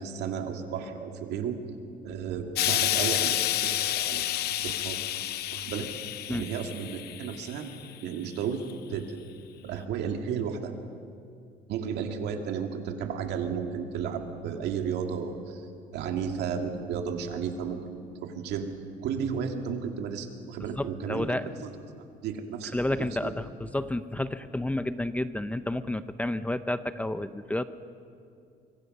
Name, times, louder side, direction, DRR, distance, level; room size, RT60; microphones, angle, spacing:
voice 1, 0.0-1.6 2.0-3.4 3.6-5.0 5.5-5.9 6.3-7.7 8.0-8.6 8.9-9.2 9.6-10.7 11.7-15.7 15.9-18.7 19.0-21.3 21.6-21.7 22.2-23.3, right 7 dB, 80° right, 4 dB, 2.2 m, -33 dB
Explosion, 2.6-7.9 8.7-8.8, left 13 dB, 75° left, 0.8 m, -29 dB
voice 2, 20.8-21.5 22.7-27.6, left 1 dB, 10° left, 12 dB, 0.7 m, -30 dB
24.5 x 23.5 x 5.4 m, 2.4 s
cardioid pair, 110°, 17 cm